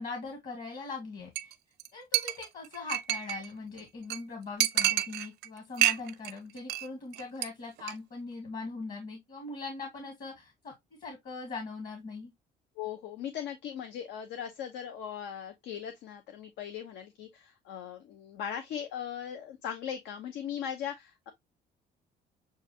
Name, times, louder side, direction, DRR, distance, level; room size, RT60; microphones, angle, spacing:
voice 1, 0.0-1.5 1.9-12.3, left 3 dB, 50° left, 1.8 m, -41 dB
Chink clink, 1.4-1.5 1.8-1.9 2.1-3.5 3.8-3.9 4.1-4.2 4.6-5.5 5.8-6.3 6.6-6.9 7.1-7.5 7.8-7.9, right 13 dB, 75° right, 0.6 m, -28 dB
voice 2, 12.8-21.3, left 9 dB, 85° left, 0.8 m, -39 dB
7.2 x 2.4 x 2.8 m
cardioid pair, 110°, 17 cm